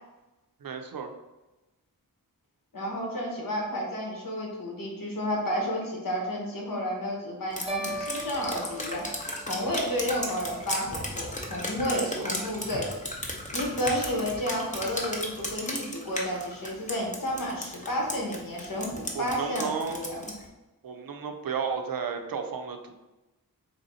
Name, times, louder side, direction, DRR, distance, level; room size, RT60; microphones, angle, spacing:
voice 1, 0.6-1.1 11.8-12.3 19.1-20.0 20.8-22.9, right 6 dB, 70° right, 5 dB, 0.5 m, -33 dB
voice 2, 2.7-9.0 9.4-12.9 13.5-20.2, equal, 65° left, -2 dB, 1.1 m, -31 dB
Drip, 7.5-20.4, left 1 dB, 20° left, 0.6 m, -35 dB
sound 1, 7.7-10.0, equal, 15° right, 0.5 m, -38 dB
3.4 x 2.8 x 3.9 m, 1.0 s
wide cardioid pair, 95°, 36 cm